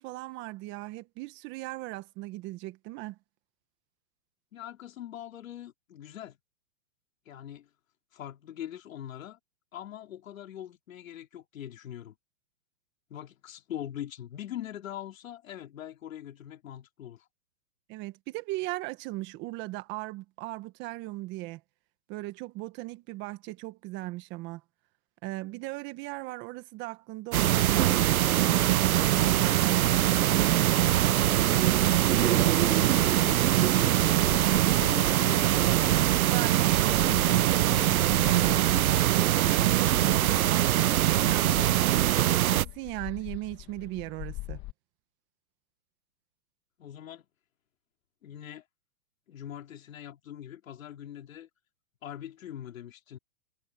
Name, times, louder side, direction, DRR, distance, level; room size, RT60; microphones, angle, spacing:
voice 1, 0.0-3.2 17.9-21.6 22.1-24.6 25.2-30.9 36.3-38.7 39.2-42.1 42.5-44.6, right 19 dB, 25° right, 1.4 m, -38 dB
voice 2, 4.5-6.4 7.3-7.7 8.1-9.4 9.7-12.1 13.1-17.3 32.0-34.2 34.6-35.7 39.9-40.4 46.8-47.3 48.2-48.6 49.3-51.5 52.0-53.2, left 11 dB, 70° left, 3.8 m, -42 dB
sound 1, 27.3-42.6, right 13 dB, 80° right, 0.7 m, -23 dB
sound 2, 35.8-44.7, left 19 dB, 25° left, 1.6 m, -45 dB
hypercardioid pair, 150°, 42 cm